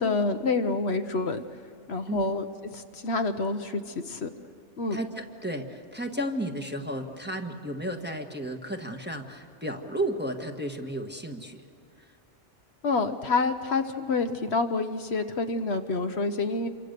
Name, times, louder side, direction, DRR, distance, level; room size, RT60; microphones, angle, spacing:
voice 1, 0.0-1.4 1.9-2.4 2.7-4.3 4.8-5.0 12.8-16.7, left 3 dB, 60° left, 7 dB, 1.2 m, -27 dB
voice 2, 4.9-11.6 12.0-12.1, right 1 dB, 10° right, 2 dB, 1.4 m, -33 dB
28.0 x 24.5 x 6.7 m, 2.4 s
omnidirectional pair, 1.3 m